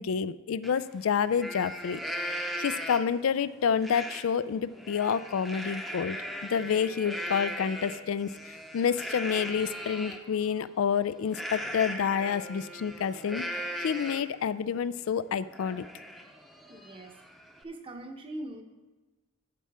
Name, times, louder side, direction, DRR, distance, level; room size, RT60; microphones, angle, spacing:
voice 1, 0.0-2.0 2.6-6.2 6.5-13.4 13.8-15.8, left 7 dB, 90° left, 15 dB, 0.4 m, -29 dB
Livestock farm animals working animals, 0.6-0.7 1.1-3.2 3.8-4.2 4.6-10.2 11.3-14.4 14.8-14.9 15.3-17.6, equal, ahead, 0.7 m, -38 dB
voice 2, 16.7-17.2 17.6-18.6, right 1 dB, 25° right, 4 dB, 0.9 m, -41 dB
11.5 x 8.3 x 3.5 m, 1.2 s
head